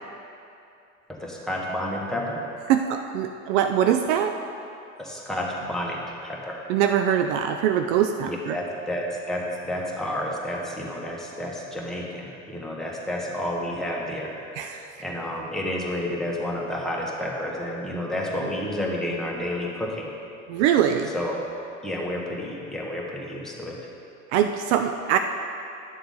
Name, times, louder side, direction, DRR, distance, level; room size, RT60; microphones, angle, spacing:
voice 1, 1.1-2.4 5.0-6.6 8.2-14.3 15.0-20.1 21.1-21.4 21.8-23.8, left 1 dB, ahead, -4 dB, 1.7 m, -30 dB
voice 2, 2.7-4.4 6.7-8.6 14.6-14.8 20.5-21.1 24.3-25.2, right 9 dB, 60° right, 7 dB, 0.5 m, -22 dB
11.0 x 6.8 x 3.9 m, 2.6 s
hypercardioid pair, 80°, 41 cm